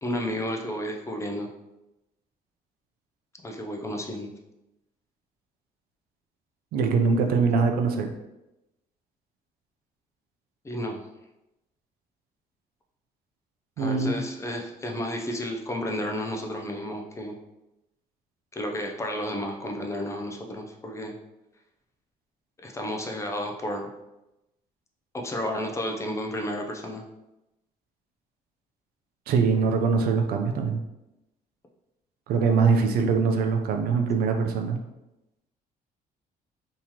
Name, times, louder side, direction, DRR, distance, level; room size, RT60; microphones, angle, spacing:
voice 1, 0.0-1.5 3.4-4.3 7.3-7.4 10.6-11.0 13.8-17.3 18.5-21.2 22.6-23.9 25.1-27.0, left 1 dB, 20° left, 2 dB, 0.4 m, -32 dB
voice 2, 6.7-8.1 13.8-14.1 29.3-30.8 32.3-34.8, right 5 dB, 75° right, 4 dB, 0.5 m, -23 dB
3.7 x 2.9 x 2.9 m, 0.93 s
cardioid pair, 140°, 16 cm